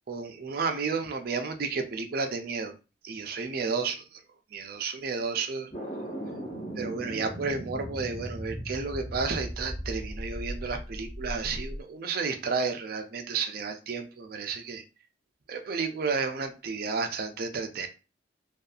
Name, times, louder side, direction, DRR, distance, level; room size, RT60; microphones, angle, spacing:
voice 1, 0.1-2.7 3.0-4.2 4.5-5.7 6.8-14.8 15.5-17.9, right 4 dB, 55° right, 6 dB, 0.4 m, -32 dB
sound 1, 5.7-11.8, equal, 30° left, 1.1 m, -37 dB
2.6 x 2.3 x 2.3 m, 0.31 s
head